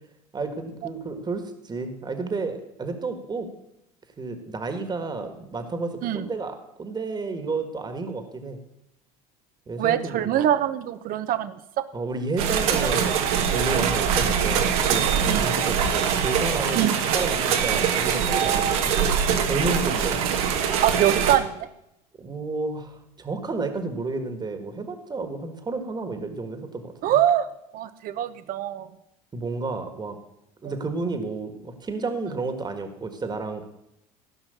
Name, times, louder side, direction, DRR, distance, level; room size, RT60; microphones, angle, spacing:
voice 1, 0.3-3.5 4.2-8.6 9.7-10.5 11.9-16.8 17.1-19.0 19.4-20.2 22.2-27.2 29.3-30.2 30.6-33.6, right 3 dB, 25° right, 7 dB, 1.7 m, -31 dB
voice 2, 9.8-11.6 15.3-15.6 16.7-17.0 20.8-21.6 27.0-27.5 27.7-28.9, right 11 dB, 50° right, 13 dB, 0.9 m, -23 dB
sound 1, 12.4-21.4, right 7 dB, 75° right, 1.5 m, -23 dB
15.5 x 5.7 x 6.9 m, 0.83 s
hypercardioid pair, 85°, 18 cm